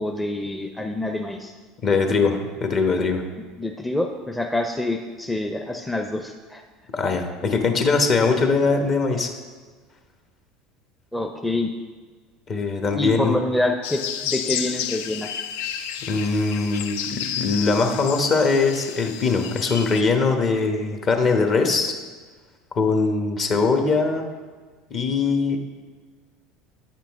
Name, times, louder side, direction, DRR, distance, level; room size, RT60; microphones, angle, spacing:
voice 1, 0.0-1.5 3.6-6.6 11.1-11.7 12.9-15.3, left 2 dB, 10° left, 3 dB, 0.6 m, -26 dB
voice 2, 1.8-3.2 6.9-9.3 12.5-13.4 16.1-21.9 22.7-24.2 24.9-25.8, left 4 dB, 45° left, 5 dB, 1.0 m, -21 dB
sound 1, 13.8-20.0, left 9 dB, 75° left, 0.3 m, -31 dB
8.5 x 5.9 x 3.5 m, 1.4 s
hypercardioid pair, 80°, 0 cm